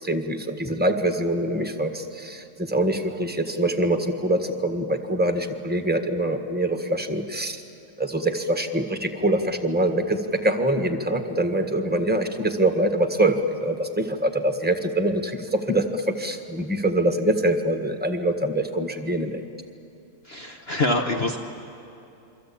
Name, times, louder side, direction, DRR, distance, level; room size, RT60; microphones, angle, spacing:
voice 1, 0.0-7.6 8.0-19.4, right 1 dB, 5° right, 5 dB, 1.5 m, -24 dB
voice 2, 20.2-21.4, left 2 dB, 45° left, 3 dB, 1.4 m, -25 dB
28.5 x 23.5 x 8.7 m, 2.7 s
omnidirectional pair, 1.5 m